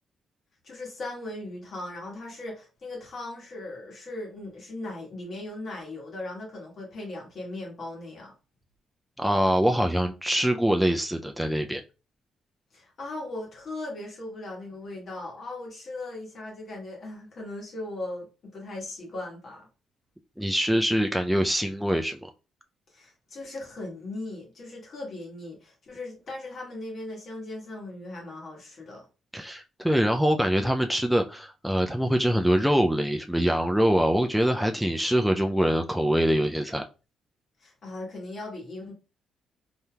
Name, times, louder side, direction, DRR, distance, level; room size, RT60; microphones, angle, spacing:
voice 1, 0.6-8.3 12.7-19.7 22.9-29.0 37.6-38.9, left 2 dB, 55° left, 1.3 m, -38 dB
voice 2, 9.2-11.8 20.4-22.3 29.3-36.8, equal, ahead, 0.3 m, -24 dB
3.3 x 2.8 x 2.2 m
cardioid pair, 90°, 0 cm